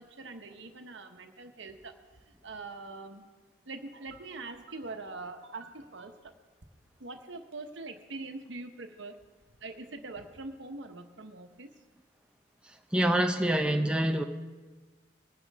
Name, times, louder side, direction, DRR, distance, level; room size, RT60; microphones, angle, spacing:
voice 1, 0.0-1.9 2.4-3.3 3.7-6.3 7.0-9.2 9.5-11.7, right 3 dB, 70° right, 6 dB, 1.1 m, -43 dB
voice 2, 12.7-14.2, right 1 dB, 5° right, 4 dB, 0.5 m, -26 dB
21.0 x 9.9 x 3.6 m, 1.3 s
head